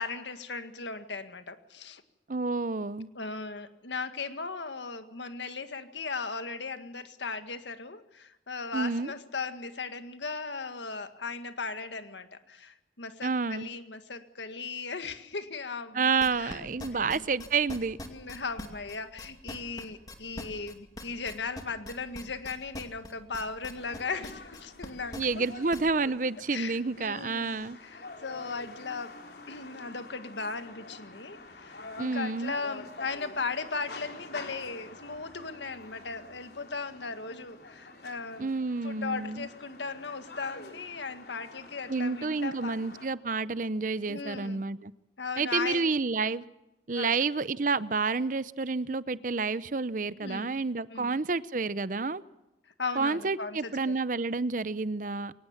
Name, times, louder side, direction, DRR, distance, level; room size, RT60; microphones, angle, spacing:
voice 1, 0.0-2.0 3.2-17.3 18.0-25.4 26.5-29.2 29.5-38.5 38.8-42.8 44.1-44.6 45.2-45.9 46.9-47.1 50.2-50.6 50.9-51.2 52.8-53.9, left 4 dB, 90° left, 9 dB, 1.8 m, -37 dB
voice 2, 2.3-3.1 8.7-9.1 13.2-13.7 15.9-18.0 25.2-27.8 32.0-32.5 38.4-39.5 41.9-44.9 45.4-46.4 46.9-52.2 53.0-55.3, right 4 dB, 45° right, 17 dB, 0.7 m, -29 dB
sound 1, 16.2-25.9, left 1 dB, 20° left, 2.4 m, -42 dB
sound 2, 23.7-43.1, left 3 dB, 65° left, 3.5 m, -48 dB
22.5 x 19.0 x 7.3 m, 0.95 s
head